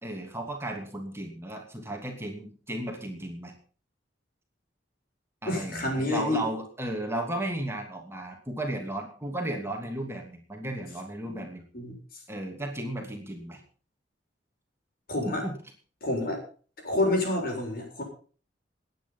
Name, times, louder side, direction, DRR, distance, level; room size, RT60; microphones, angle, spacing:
voice 1, 0.0-3.5 5.4-11.6 12.3-13.6 15.2-15.6, right 1 dB, 15° right, 2 dB, 2.7 m, -34 dB
voice 2, 5.4-6.4 11.2-11.5 11.7-11.9 15.1-15.4 16.0-16.4 16.8-18.0, left 1 dB, 55° left, 1 dB, 7.2 m, -28 dB
19.5 x 9.5 x 5.7 m, 0.41 s
head